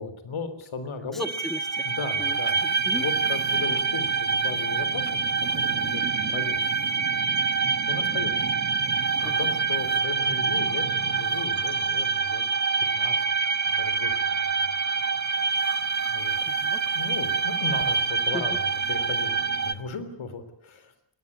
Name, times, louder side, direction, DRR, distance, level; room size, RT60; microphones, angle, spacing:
voice 1, 0.0-1.3 1.8-2.6 2.9-7.0 7.9-8.3 9.2-12.4 12.9-13.1 13.7-14.7 16.1-16.4 16.9-20.9, left 4 dB, 75° left, 11 dB, 3.6 m, -36 dB
voice 2, 1.1-1.9 2.2-3.0 9.2-9.4 16.4-16.8 18.3-18.5, left 1 dB, ahead, 11 dB, 1.3 m, -36 dB
sound 1, 1.2-19.7, right 5 dB, 35° right, 1.1 m, -26 dB
22.0 x 18.0 x 8.5 m, 0.72 s
cardioid pair, 85°, 48 cm